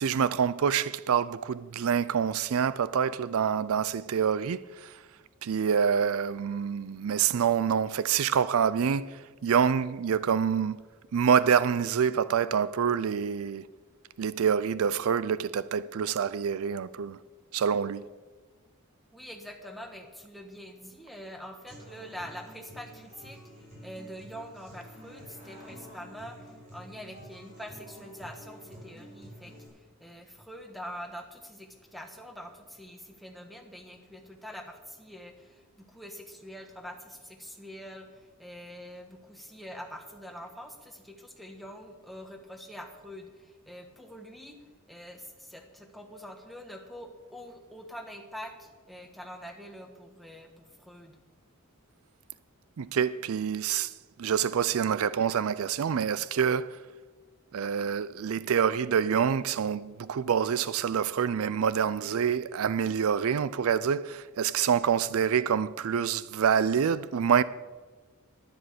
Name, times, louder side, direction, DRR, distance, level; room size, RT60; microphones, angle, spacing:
voice 1, 0.0-5.0 5.4-10.8 11.1-13.6 14.2-17.2 17.5-18.0 52.8-53.9 54.2-56.8 57.5-67.4, right 7 dB, 70° right, 0.4 m, -26 dB
voice 2, 19.1-51.2, equal, ahead, 1.4 m, -45 dB
Human voice / Acoustic guitar, 21.7-29.7, equal, 30° right, 4.8 m, -49 dB
11.0 x 10.5 x 6.8 m
head